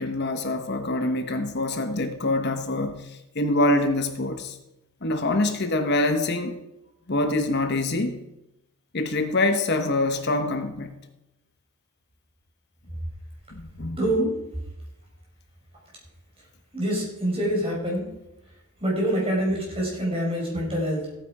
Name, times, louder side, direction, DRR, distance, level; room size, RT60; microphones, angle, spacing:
voice 1, 0.0-4.6 5.0-6.5 7.1-8.2 8.9-11.0 13.5-14.0, left 2 dB, 50° left, 0.9 m, -25 dB
voice 2, 14.0-14.4 16.7-18.1 18.8-21.1, right 1 dB, 25° right, 5.0 m, -25 dB
14.5 x 9.1 x 4.8 m
head